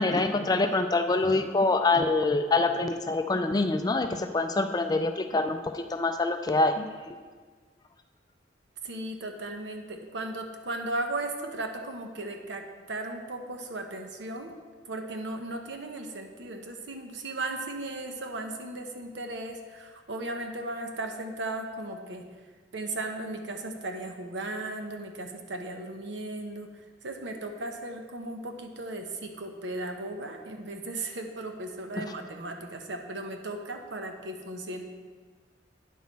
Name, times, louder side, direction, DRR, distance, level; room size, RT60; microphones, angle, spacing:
voice 1, 0.0-7.2, left 3 dB, 20° left, 7 dB, 0.3 m, -25 dB
voice 2, 8.8-14.6 14.8-22.3 22.7-34.8, right 2 dB, 75° right, 4 dB, 0.9 m, -36 dB
9.3 x 6.3 x 4.1 m, 1.5 s
head